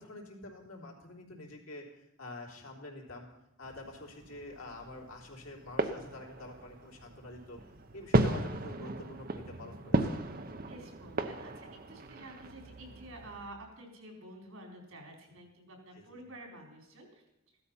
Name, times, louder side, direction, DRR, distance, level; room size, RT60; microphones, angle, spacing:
voice 1, 0.0-1.9 2.2-3.3 3.6-7.6 7.9-10.1 15.9-16.2, left 2 dB, 85° left, 0 dB, 3.5 m, -47 dB
sound 1, 3.6-13.5, right 2 dB, 45° right, 0.9 m, -35 dB
voice 2, 10.6-17.2, right 1 dB, 85° right, 1 dB, 4.6 m, -50 dB
16.0 x 12.5 x 5.7 m, 0.87 s
head